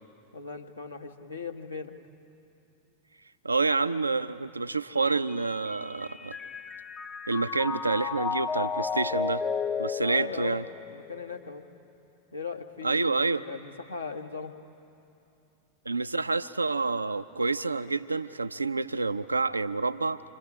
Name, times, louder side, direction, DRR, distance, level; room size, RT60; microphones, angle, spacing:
voice 1, 0.3-1.9 10.0-10.6 10.9-11.6 12.3-14.5, left 5 dB, 80° left, 4 dB, 1.3 m, -38 dB
voice 2, 3.4-6.4 7.3-9.4 9.8-10.6 12.8-13.4 15.9-20.2, right 3 dB, 80° right, 12 dB, 0.5 m, -28 dB
Mallet percussion, 5.3-11.5, left 6 dB, 25° left, 0.6 m, -33 dB
27.5 x 25.0 x 4.8 m, 2.7 s
figure-of-eight pair, 90°, 0 cm